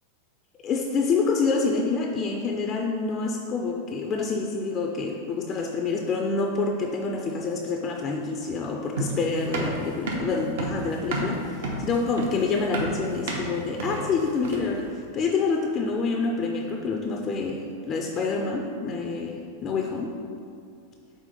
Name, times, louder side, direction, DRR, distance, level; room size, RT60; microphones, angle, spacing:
voice 1, 0.6-20.2, left 4 dB, 20° left, 2 dB, 0.3 m, -27 dB
sound 1, 9.0-14.8, right 2 dB, 75° right, 1.0 m, -30 dB
4.8 x 3.9 x 5.3 m, 2.4 s
supercardioid pair, 160°, 0 cm